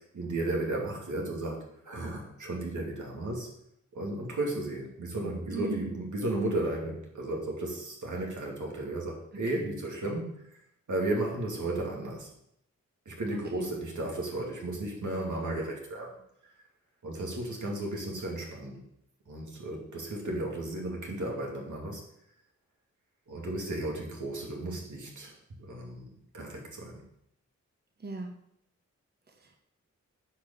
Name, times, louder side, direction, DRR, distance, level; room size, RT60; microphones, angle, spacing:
voice 1, 0.1-3.5 3.9-10.4 10.9-12.3 13.1-16.2 17.0-18.8 19.3-22.0 23.3-27.0, right 2 dB, 75° right, -1 dB, 2.8 m, -34 dB
voice 2, 5.5-5.9 9.5-9.7 13.3-13.7 28.0-28.3 29.3-29.6, right 4 dB, 35° right, 2 dB, 1.2 m, -38 dB
10.0 x 5.2 x 7.0 m, 0.74 s
wide cardioid pair, 85°, 30 cm